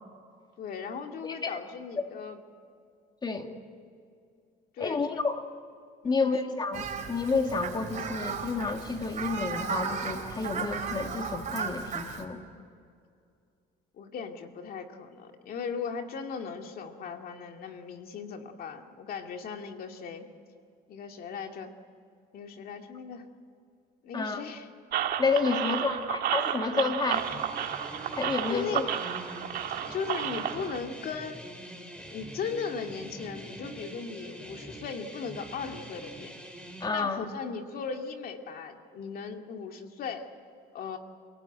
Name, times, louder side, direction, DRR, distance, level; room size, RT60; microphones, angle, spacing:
voice 1, 0.6-2.4 4.7-5.2 6.0-6.3 14.0-20.3 20.9-21.7 22.3-23.3 24.0-24.7 25.5-25.9 28.5-28.9 29.9-31.5 32.1-36.3 36.9-40.3 40.7-41.0, left 5 dB, 60° left, 4 dB, 2.3 m, -37 dB
voice 2, 1.2-1.6 3.2-3.5 4.8-5.4 6.0-12.4 24.1-24.4 25.2-27.2 28.2-28.8 36.8-37.2, left 4 dB, 25° left, 5 dB, 2.3 m, -30 dB
Fowl, 6.7-12.2, right 6 dB, 45° right, 3.8 m, -35 dB
sound 1, 24.9-30.8, right 10 dB, 65° right, 1.8 m, -32 dB
sound 2, 27.1-36.9, right 1 dB, 5° left, 4.0 m, -44 dB
28.0 x 18.0 x 9.2 m, 2.3 s
cardioid pair, 110°, 17 cm